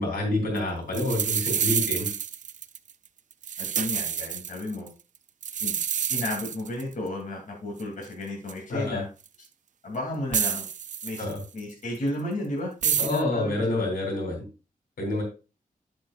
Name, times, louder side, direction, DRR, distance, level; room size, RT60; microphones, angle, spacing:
voice 1, 0.0-2.1 8.7-9.0 11.2-11.4 13.0-14.5 15.0-15.2, left 2 dB, 90° left, 1 dB, 3.8 m, -28 dB
sound 1, 0.6-0.7 0.9-2.9 3.3-4.9 5.4-6.9 7.8-7.9 8.5-8.6 9.3-9.4 10.3-11.6 12.8-13.2, right 8 dB, 55° right, 0.4 m, -28 dB
voice 2, 3.6-4.9 5.6-5.8 6.1-9.1 9.8-10.7 11.0-11.2 11.5-13.9, left 1 dB, 60° left, -2 dB, 2.9 m, -33 dB
10.5 x 7.7 x 2.5 m, 0.31 s
wide cardioid pair, 155°, 15 cm